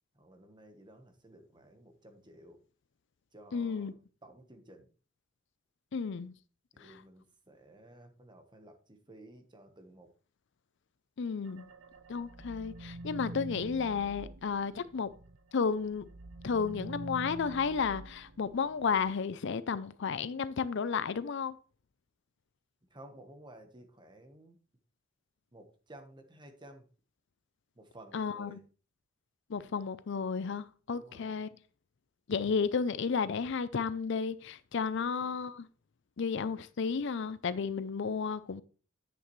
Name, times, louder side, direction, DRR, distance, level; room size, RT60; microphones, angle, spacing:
voice 1, 0.1-2.6 3.3-4.0 4.2-4.9 6.7-10.1 22.9-24.6 25.5-26.9 27.8-28.6 30.9-31.4 34.9-35.4, right 1 dB, 20° right, 1.2 m, -54 dB
voice 2, 3.5-3.9 5.9-6.3 6.8-7.0 11.2-11.7 12.1-15.1 15.5-16.1 16.4-21.6 28.1-28.6 29.5-31.5 32.3-35.7 36.2-38.6, left 5 dB, 60° left, 0.5 m, -33 dB
sound 1, 11.5-15.4 15.7-19.1, right 2 dB, 70° right, 0.7 m, -46 dB
10.0 x 8.0 x 3.2 m
head